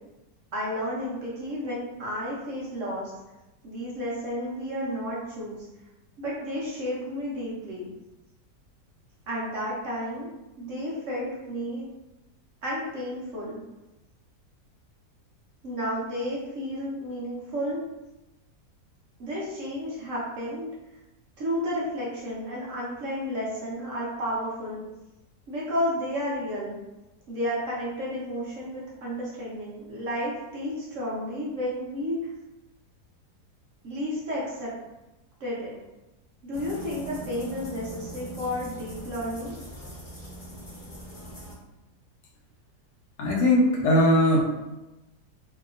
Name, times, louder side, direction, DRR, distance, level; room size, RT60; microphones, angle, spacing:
voice 1, 0.5-3.1 3.6-5.7 6.2-7.9 9.3-10.3 10.6-11.9 12.6-13.6 15.6-17.8 19.2-20.7 21.4-24.9 25.5-26.8 27.3-32.2 33.8-34.7 35.4-35.7 36.4-39.5, equal, 55° right, -6 dB, 1.0 m, -32 dB
sound 1, 36.5-41.5, right 1 dB, 35° left, 0.4 m, -41 dB
voice 2, 43.2-44.4, left 1 dB, 85° left, -2 dB, 1.3 m, -20 dB
3.2 x 2.8 x 2.4 m, 1.0 s
omnidirectional pair, 1.8 m